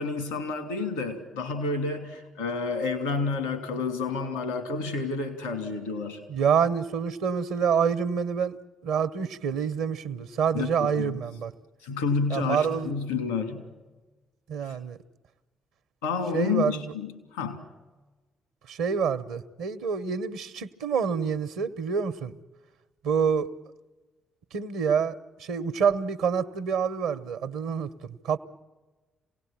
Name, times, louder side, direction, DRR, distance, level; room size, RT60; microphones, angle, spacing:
voice 1, 0.0-6.2 10.5-11.2 11.8-13.7 14.7-14.8 16.0-17.6, left 4 dB, 85° left, 2.7 m, -30 dB
voice 2, 6.3-8.6 8.8-11.5 12.3-12.9 14.5-15.0 16.3-16.8 18.7-22.4 23.0-23.5 24.5-28.4, right 6 dB, 70° right, 0.9 m, -27 dB
26.5 x 18.0 x 8.8 m
figure-of-eight pair, 40°, 0 cm